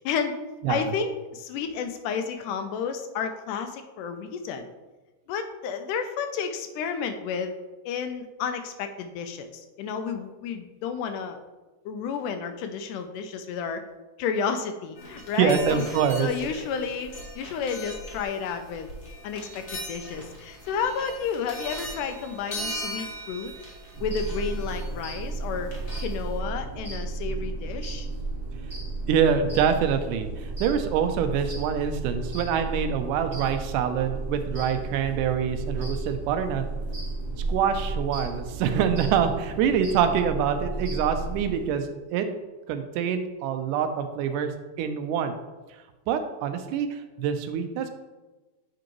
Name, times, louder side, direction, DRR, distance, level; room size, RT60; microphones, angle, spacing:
voice 1, 0.1-0.4 0.7-4.7 5.3-7.6 7.9-9.5 9.8-11.4 11.9-13.8 14.2-15.9 16.2-18.9 19.2-23.5 24.0-25.7 26.0-28.1, left 6 dB, 80° left, 7 dB, 2.1 m, -31 dB
sound 1, 15.0-26.4, equal, 55° left, 0.7 m, -40 dB
voice 2, 15.4-16.3 29.1-36.7 37.5-42.3 42.7-44.5 44.8-45.3 46.1-47.9, right 7 dB, 85° right, 8 dB, 2.1 m, -25 dB
sound 2, 23.9-41.7, right 3 dB, 20° right, 1.1 m, -33 dB
8.1 x 5.1 x 3.0 m, 1.2 s
omnidirectional pair, 3.7 m